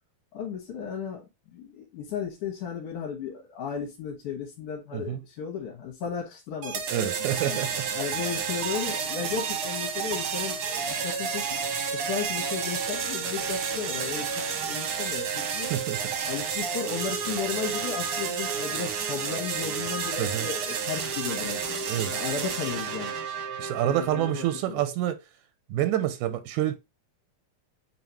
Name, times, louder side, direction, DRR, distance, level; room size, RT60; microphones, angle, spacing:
voice 1, 0.3-7.6 7.9-11.6 11.9-15.7 16.1-21.8 22.1-23.1 23.8-24.8, left 7 dB, 75° left, 3.0 m, -35 dB
sound 1, 6.6-24.6, right 6 dB, 60° right, 1.5 m, -31 dB
voice 2, 6.9-7.9 15.7-16.0 20.2-20.5 21.9-22.1 23.6-25.2 25.7-26.8, right 12 dB, 85° right, 2.1 m, -27 dB
9.1 x 3.4 x 3.0 m
omnidirectional pair, 3.6 m